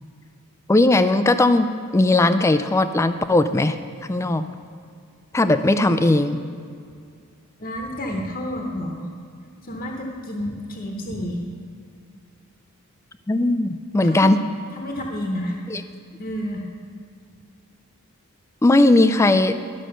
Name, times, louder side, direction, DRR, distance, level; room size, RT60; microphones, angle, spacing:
voice 1, 0.7-3.8 4.1-4.4 5.3-6.4 13.3-14.4 15.7-15.8 18.6-19.6, left 2 dB, 15° left, 11 dB, 0.3 m, -18 dB
voice 2, 7.6-9.1 9.6-11.4 14.0-14.3 14.7-15.6 16.2-16.7, equal, 40° left, 0 dB, 1.0 m, -30 dB
12.0 x 6.2 x 6.6 m, 2.3 s
head